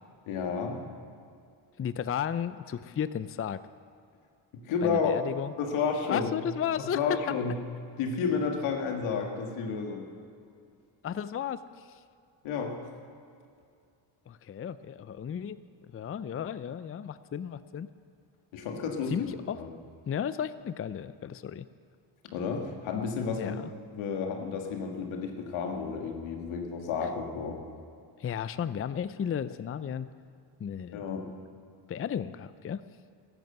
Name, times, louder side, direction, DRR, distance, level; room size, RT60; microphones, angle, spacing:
voice 1, 0.3-0.8 4.5-5.1 5.6-6.3 6.9-7.6 8.0-10.1 12.4-12.8 18.5-19.3 19.6-19.7 22.3-23.6 23.9-27.6 30.9-31.3, left 5 dB, 90° left, 2 dB, 1.9 m, -31 dB
voice 2, 1.8-3.6 4.8-5.5 6.1-7.2 11.0-12.0 14.3-15.6 15.9-17.9 19.1-19.6 20.1-21.7 23.3-23.7 28.2-30.1 30.6-31.0 31.9-32.8, left 8 dB, 30° left, 14 dB, 0.5 m, -34 dB
14.0 x 11.0 x 7.8 m, 2.4 s
supercardioid pair, 65°, 47 cm